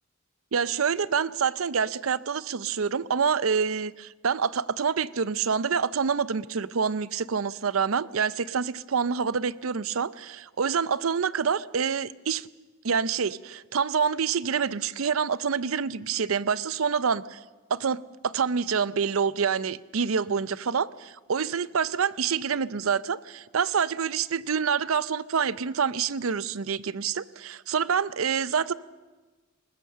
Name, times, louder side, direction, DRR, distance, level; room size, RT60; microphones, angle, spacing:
voice 1, 0.5-12.5 12.8-17.4 17.7-28.7, right 6 dB, 90° right, 17 dB, 0.6 m, -27 dB
21.0 x 19.5 x 6.7 m, 1.2 s
head